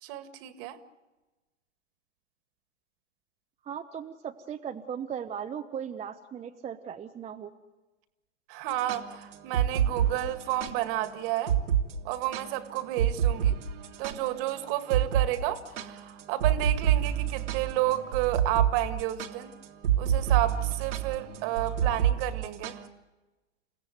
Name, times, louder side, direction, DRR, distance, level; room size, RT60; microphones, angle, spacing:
voice 1, 0.0-0.8 8.5-11.5 12.0-13.6 14.0-19.5 20.0-22.8, right 13 dB, 45° right, 10 dB, 2.1 m, -31 dB
voice 2, 3.6-7.5 21.8-22.0, right 8 dB, 15° right, 4 dB, 0.9 m, -38 dB
sound 1, 8.7-10.7 11.0-11.1 11.5-11.8 12.1-14.5 14.9-15.3 15.6-22.9, right 10 dB, 70° right, 2.3 m, -27 dB
29.5 x 16.0 x 9.4 m, 1.2 s
hypercardioid pair, 110°, 37 cm